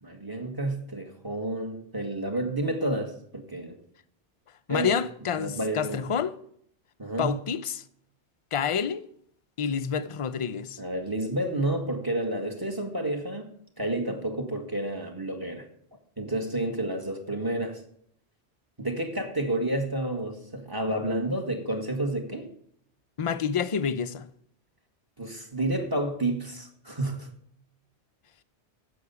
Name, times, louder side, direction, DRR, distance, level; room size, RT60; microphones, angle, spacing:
voice 1, 0.0-3.8 4.7-4.9 5.4-6.0 7.0-7.4 10.8-15.6 16.2-17.8 18.8-22.5 25.2-27.3, right 1 dB, 20° right, 1.6 m, -30 dB
voice 2, 4.7-6.4 7.2-7.8 8.5-9.0 9.6-10.8 23.2-24.3, left 7 dB, 40° left, 0.5 m, -28 dB
9.9 x 7.4 x 6.9 m
omnidirectional pair, 1.2 m